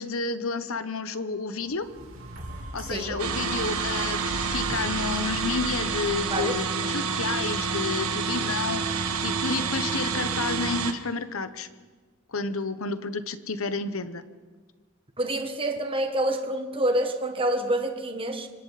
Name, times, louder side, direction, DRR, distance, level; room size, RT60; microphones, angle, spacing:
voice 1, 0.0-1.9 2.7-11.7 12.3-14.3, left 4 dB, 70° left, 1.1 m, -31 dB
sound 1, 1.6-9.6 10.2-10.3, right 2 dB, 65° right, 3.5 m, -40 dB
voice 2, 2.9-3.2 6.3-6.6 15.2-18.5, right 1 dB, 25° right, 1.5 m, -27 dB
sound 2, 3.2-10.9, right 5 dB, 80° right, 1.5 m, -28 dB
25.5 x 25.0 x 4.2 m
head